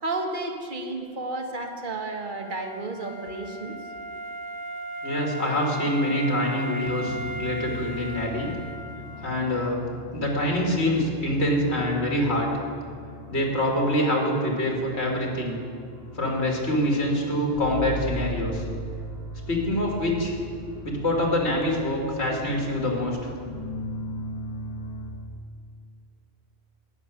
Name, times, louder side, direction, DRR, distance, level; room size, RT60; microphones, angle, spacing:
voice 1, 0.0-3.8, right 2 dB, 50° right, 3 dB, 1.2 m, -32 dB
Wind instrument woodwind instrument, 2.1-9.9, equal, 35° left, 0.4 m, -37 dB
voice 2, 5.0-8.5 9.2-9.8 10.1-12.5 13.3-15.6 16.1-18.6 19.5-20.3 20.8-23.3, left 1 dB, 70° left, -1 dB, 2.3 m, -25 dB
sound 1, 6.8-25.1, equal, 15° left, 3.2 m, -39 dB
11.0 x 6.0 x 9.0 m, 2.2 s
omnidirectional pair, 1.1 m